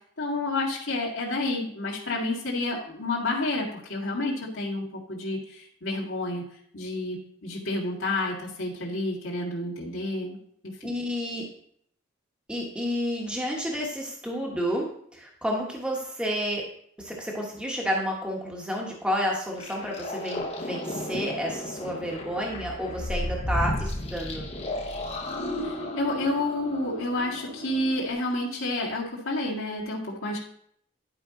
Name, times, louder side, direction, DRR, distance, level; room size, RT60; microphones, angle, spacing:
voice 1, 0.2-6.4 6.7-10.4 10.6-10.9 25.6-30.4, left 2 dB, 80° left, -6 dB, 1.9 m, -30 dB
voice 2, 10.8-11.4 12.5-14.9 15.1-16.6 17.0-24.5, equal, 5° right, -2 dB, 1.3 m, -30 dB
sound 1, 19.6-28.1, left 1 dB, 30° left, 0.9 m, -33 dB
11.0 x 5.3 x 3.8 m, 0.66 s
head